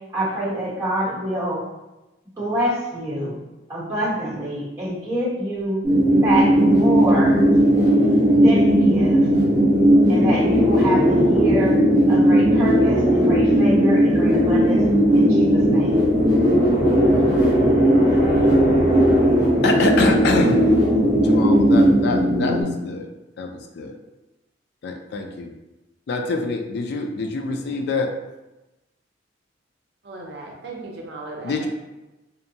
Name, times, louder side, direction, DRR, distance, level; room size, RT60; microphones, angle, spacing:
voice 1, 0.1-1.6 2.4-3.3 3.7-5.8 6.2-7.4 8.4-9.3 10.1-11.7 12.1-14.8 15.1-16.0, right 1 dB, 15° right, -9 dB, 1.0 m, -26 dB
sound 1, 5.8-22.6, equal, 45° right, 0.9 m, -17 dB
voice 2, 19.6-20.7 21.2-23.1 23.4-23.9 24.8-25.5 26.1-28.1 31.4-31.7, left 3 dB, 60° left, 3 dB, 0.3 m, -25 dB
voice 3, 30.0-31.7, right 2 dB, 60° right, 0 dB, 0.5 m, -36 dB
2.7 x 2.1 x 2.7 m, 1.0 s
head